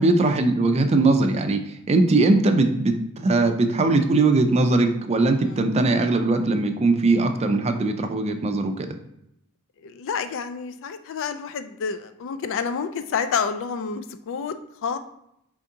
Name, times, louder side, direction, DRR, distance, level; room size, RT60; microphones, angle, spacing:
voice 1, 0.0-8.9, right 2 dB, 30° right, 6 dB, 0.4 m, -20 dB
voice 2, 9.8-14.6 14.8-15.0, left 6 dB, 60° left, 10 dB, 0.4 m, -29 dB
4.4 x 2.7 x 3.6 m, 0.80 s
head